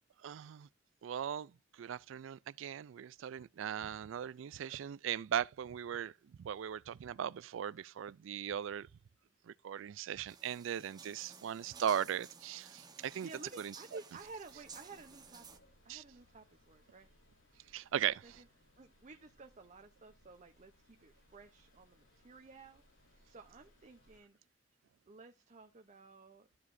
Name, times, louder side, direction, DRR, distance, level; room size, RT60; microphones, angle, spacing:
voice 1, 0.2-0.7 1.0-6.1 6.4-8.9 9.5-13.3 13.6-13.7 15.9-16.0 17.7-18.2, right 9 dB, 75° right, 0.3 m, -38 dB
sound 1, 10.3-15.6, right 5 dB, 20° right, 1.1 m, -55 dB
voice 2, 13.2-15.6 15.8-17.1 18.0-18.5 18.8-24.4 25.1-26.5, right 3 dB, 40° right, 0.7 m, -54 dB
sound 2, 14.1-24.2, left 1 dB, 75° left, 3.6 m, -68 dB
12.5 x 4.9 x 2.6 m
head